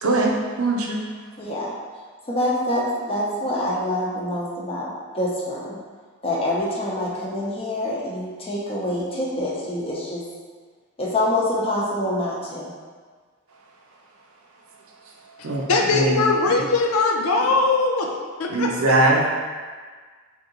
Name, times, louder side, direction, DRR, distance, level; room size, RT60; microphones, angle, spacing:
voice 1, 0.0-1.0 15.4-15.6 15.9-16.2 16.5-16.6 18.5-19.3, right 2 dB, 70° right, -1 dB, 0.6 m, -21 dB
voice 2, 1.4-1.7 2.3-5.8 6.2-10.2 11.0-12.7, left 1 dB, 25° left, -5 dB, 0.8 m, -26 dB
voice 3, 15.4-18.1 18.4-18.9, left 3 dB, 85° left, 2 dB, 0.5 m, -21 dB
3.6 x 2.8 x 3.8 m, 1.5 s
head